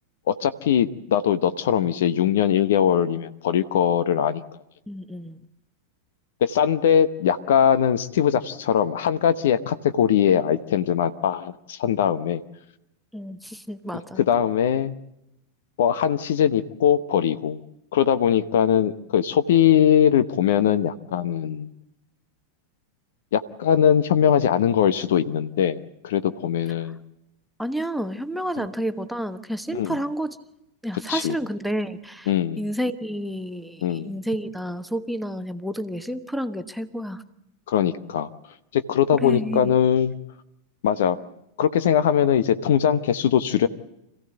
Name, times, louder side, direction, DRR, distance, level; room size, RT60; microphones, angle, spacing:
voice 1, 0.3-4.4 6.4-12.4 14.1-14.9 15.8-17.6 17.9-21.7 23.3-27.0 28.6-28.7 29.7-29.9 31.1-31.3 32.3-32.6 33.8-34.1 37.7-38.3 38.7-40.1 40.8-41.2 41.6-43.7, left 9 dB, 55° left, 14 dB, 0.9 m, -21 dB
voice 2, 4.9-5.4 13.1-14.2 27.6-30.4 30.8-37.2 39.2-39.7, equal, ahead, 9 dB, 1.2 m, -30 dB
26.0 x 16.0 x 7.8 m, 0.86 s
figure-of-eight pair, 90°, 0 cm